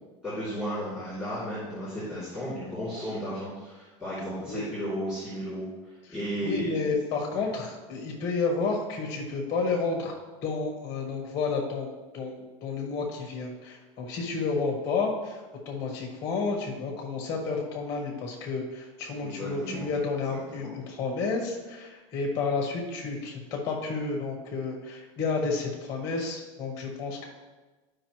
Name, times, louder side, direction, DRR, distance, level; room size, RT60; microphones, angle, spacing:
voice 1, 0.2-6.8 7.3-7.4 19.2-19.8 20.3-20.7, equal, 5° right, -14 dB, 2.8 m, -34 dB
voice 2, 6.4-10.1 10.4-27.2, left 4 dB, 20° left, 1 dB, 0.9 m, -31 dB
12.5 x 5.0 x 3.0 m, 1.2 s
supercardioid pair, 180°, 16 cm